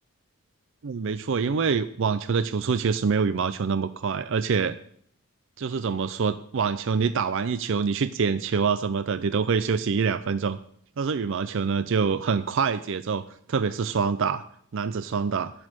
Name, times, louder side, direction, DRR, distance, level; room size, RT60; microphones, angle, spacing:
voice 1, 0.8-4.8 5.6-10.6 11.0-14.4 14.7-15.5, right 5 dB, 55° right, 12 dB, 0.4 m, -25 dB
11.0 x 6.4 x 8.8 m, 0.65 s
head